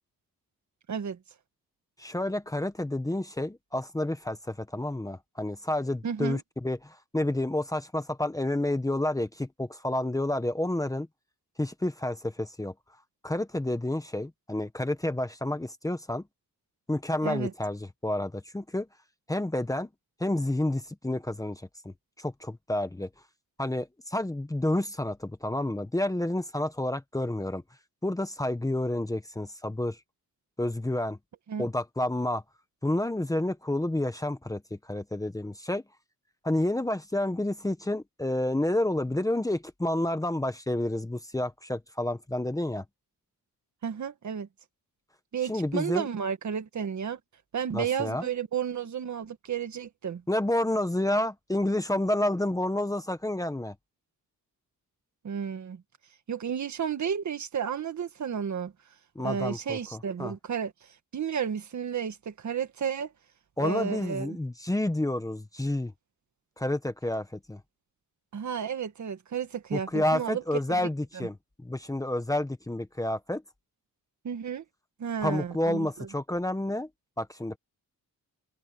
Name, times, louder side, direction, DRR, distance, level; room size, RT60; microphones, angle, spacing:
voice 1, 0.9-1.2 6.0-6.4 17.2-17.5 31.5-31.7 43.8-44.5 45.3-47.2 47.5-50.2 55.2-55.8 56.3-58.7 59.2-60.7 61.1-63.1 63.6-64.4 68.3-70.4 71.1-71.3 74.2-74.6 75.0-76.1, right 7 dB, 55° right, 1.8 m, -32 dB
voice 2, 2.0-11.1 11.6-12.7 13.2-16.2 16.9-18.9 19.3-19.9 20.2-23.1 23.6-27.6 28.0-30.0 30.6-31.2 31.6-32.4 32.8-35.8 36.4-42.8 45.5-46.1 47.7-48.3 50.3-53.7 59.1-60.3 63.6-65.9 66.6-67.6 69.7-73.4 75.2-76.9 77.2-77.6, left 1 dB, 10° left, 1.2 m, -29 dB
wide cardioid pair, 150°, 35 cm